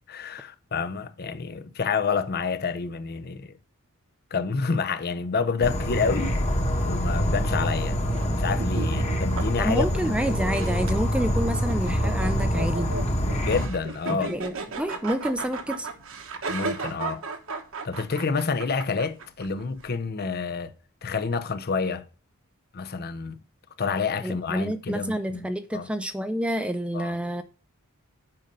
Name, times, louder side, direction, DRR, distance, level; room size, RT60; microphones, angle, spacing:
voice 1, 0.1-3.5 4.3-6.3 6.8-8.0 8.4-10.2 13.4-14.3 16.5-17.2 17.8-20.7 21.0-22.0 22.7-23.4 23.8-25.9 26.9-27.2, left 5 dB, 45° left, 0.6 m, -28 dB
Insect / Frog, 5.6-13.7, equal, 30° left, 1.3 m, -25 dB
sound 1, 6.3-19.9, right 4 dB, 65° right, 1.2 m, -37 dB
voice 2, 9.6-12.9 14.1-15.9 24.2-27.4, right 1 dB, 5° right, 0.5 m, -28 dB
7.7 x 5.3 x 5.4 m
head